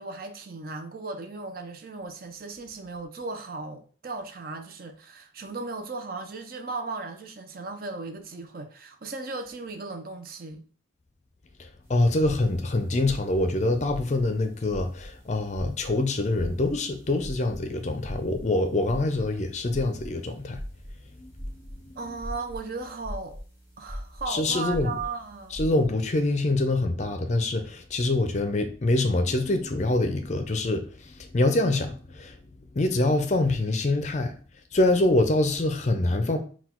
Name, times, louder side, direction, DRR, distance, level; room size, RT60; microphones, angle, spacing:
voice 1, 0.0-10.6 22.0-23.4 23.8-25.6 34.2-34.3, right 3 dB, 50° right, 0.5 m, -36 dB
sound 1, 11.8-25.9, equal, 10° right, 1.1 m, -42 dB
voice 2, 11.9-20.6 21.2-21.3 21.8-21.9 24.3-24.9 25.5-32.3 32.7-34.3 34.7-36.4, left 2 dB, 35° left, 0.4 m, -25 dB
4.0 x 2.3 x 4.3 m
head